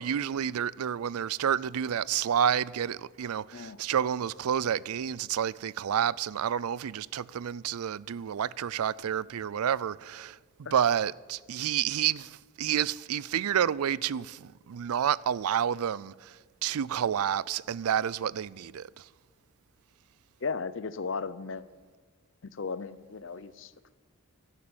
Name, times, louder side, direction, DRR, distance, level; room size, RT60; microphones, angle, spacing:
voice 1, 0.0-10.4 10.7-19.1, right 9 dB, 90° right, 0.4 m, -29 dB
voice 2, 20.4-21.7 22.4-23.9, left 4 dB, 60° left, 0.6 m, -36 dB
12.5 x 11.5 x 8.7 m
head